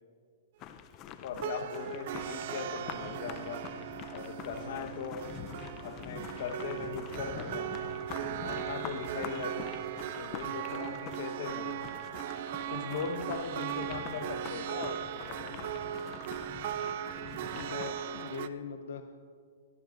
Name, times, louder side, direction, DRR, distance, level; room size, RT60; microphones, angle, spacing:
sound 1, 0.6-18.2, left 9 dB, 25° left, 0.5 m, -46 dB
voice 1, 1.1-3.7 4.1-5.3 5.8-11.8 12.7-15.8, left 6 dB, 50° left, 5 dB, 1.1 m, -40 dB
sound 2, 1.3-18.5, right 11 dB, 45° right, 0.4 m, -38 dB
voice 2, 17.5-19.0, left 6 dB, 70° left, 6 dB, 0.7 m, -41 dB
22.0 x 14.5 x 2.6 m, 2.1 s
hypercardioid pair, 165°, 0 cm